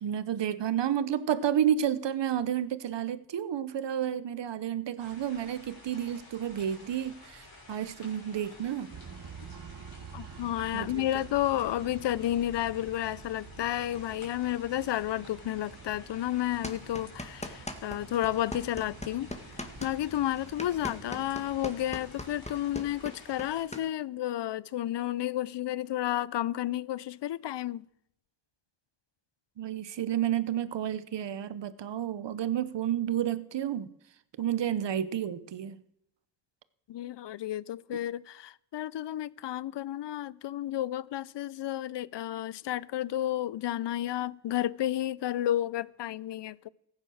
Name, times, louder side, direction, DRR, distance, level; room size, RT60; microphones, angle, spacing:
voice 1, 0.0-8.9 10.7-11.1 29.6-33.9 34.4-35.8, right 10 dB, 75° right, 0.9 m, -31 dB
sound 1, 5.0-23.6, left 2 dB, 55° left, 6.4 m, -52 dB
sound 2, 8.9-22.4, right 6 dB, 50° right, 1.2 m, -49 dB
voice 2, 10.1-19.3 19.8-27.9 36.9-46.7, left 12 dB, 75° left, 0.5 m, -31 dB
sound 3, 16.6-18.0 18.2-23.8, left 1 dB, 15° left, 1.9 m, -39 dB
14.5 x 9.5 x 6.4 m
cardioid pair, 50°, 43 cm